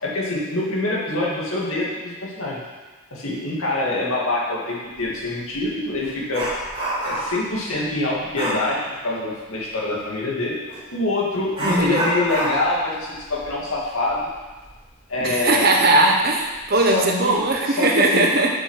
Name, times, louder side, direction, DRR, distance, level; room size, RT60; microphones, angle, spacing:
voice 1, 0.0-2.6 3.1-6.5 7.0-10.6 10.9-14.3 15.1-15.7 16.7-17.4 17.7-18.3, left 2 dB, 75° left, -4 dB, 2.4 m, -25 dB
Dog, 5.0-5.1 5.6-7.5 8.3-8.7 10.7-10.8 11.5-14.8 15.1-15.2 15.8-15.9 16.5-16.9 17.3-17.6, equal, 25° right, 3.3 m, -28 dB
voice 2, 11.6-12.0 15.2-18.5, right 2 dB, 45° right, 1 dB, 1.1 m, -19 dB
7.3 x 6.8 x 6.4 m, 1.3 s
head